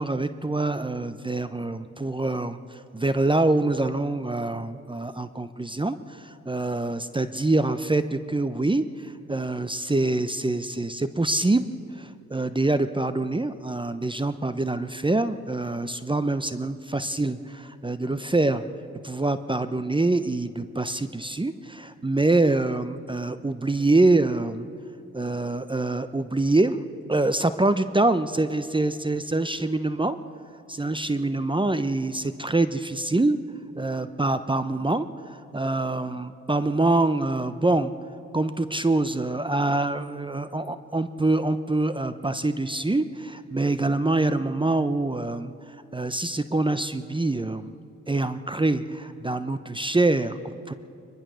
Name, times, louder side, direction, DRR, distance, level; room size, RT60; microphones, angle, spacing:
voice 1, 0.0-11.6 11.9-18.6 19.0-24.7 25.1-26.8 27.1-30.2 30.7-33.4 33.8-37.9 38.3-45.5 45.9-47.7 48.1-50.7, right 2 dB, 15° right, 12 dB, 0.9 m, -25 dB
23.0 x 21.0 x 6.4 m, 2.5 s
hypercardioid pair, 45°, 32 cm